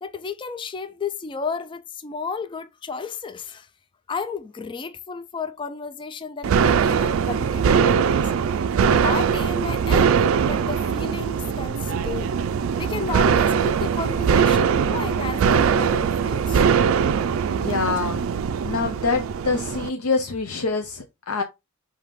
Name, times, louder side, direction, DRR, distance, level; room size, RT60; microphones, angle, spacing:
voice 1, 0.0-3.7 4.1-8.3 8.8-12.3 12.8-16.6, left 5 dB, 20° left, 0.3 m, -33 dB
sound 1, 6.4-19.9, right 6 dB, 70° right, 0.3 m, -21 dB
voice 2, 17.5-18.3 18.6-21.4, left 4 dB, 85° left, 0.6 m, -25 dB
5.0 x 2.7 x 3.6 m
head